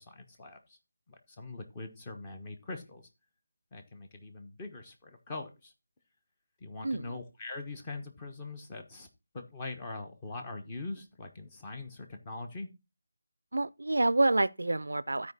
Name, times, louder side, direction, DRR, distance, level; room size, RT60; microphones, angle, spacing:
voice 1, 0.1-0.6 1.4-3.0 3.7-5.7 6.6-9.1 9.3-12.7, left 3 dB, 20° left, 1.2 m, -42 dB
voice 2, 6.8-7.2 13.5-15.3, right 2 dB, 85° right, 0.4 m, -28 dB
12.5 x 4.8 x 4.1 m
figure-of-eight pair, 165°, 0 cm